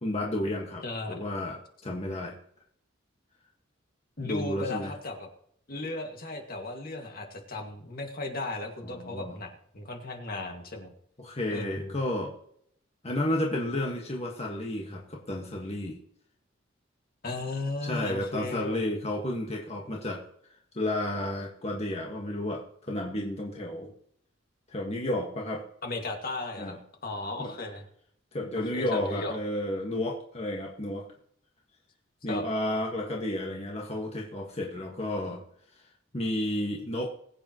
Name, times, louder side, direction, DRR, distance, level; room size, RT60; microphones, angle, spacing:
voice 1, 0.0-2.4 4.2-4.9 8.8-9.4 11.2-12.3 13.0-16.0 17.8-20.2 20.7-23.9 24.7-25.6 26.6-26.8 27.4-27.5 28.3-31.1 32.2-35.4 36.1-37.1, left 1 dB, 35° left, -1 dB, 1.6 m, -32 dB
voice 2, 0.8-1.2 4.2-5.3 5.7-10.9 11.5-12.0 17.2-18.8 25.8-26.8 27.0-27.8 28.6-29.4 32.3-32.4, left 2 dB, 50° left, 3 dB, 2.0 m, -36 dB
21.0 x 8.7 x 3.0 m, 0.68 s
head